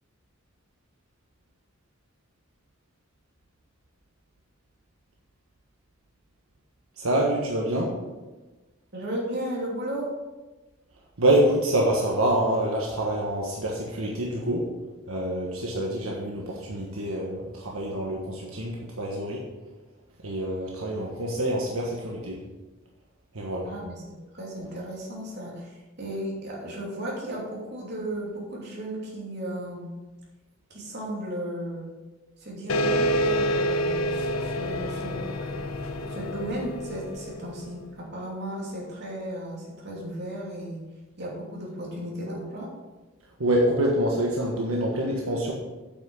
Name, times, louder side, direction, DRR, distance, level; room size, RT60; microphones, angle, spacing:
voice 1, 7.0-7.9 11.2-14.7 15.1-19.4 20.2-22.4 23.3-23.7 43.4-45.5, right 1 dB, 85° right, -2 dB, 1.4 m, -26 dB
voice 2, 8.9-10.1 23.6-24.0 24.3-29.9 30.7-31.9 32.4-35.3 36.1-40.8 41.2-42.7, right 1 dB, 55° right, -4 dB, 3.0 m, -35 dB
sound 1, 32.7-37.8, equal, 85° left, 0.8 m, -28 dB
8.7 x 5.9 x 6.4 m, 1.2 s
head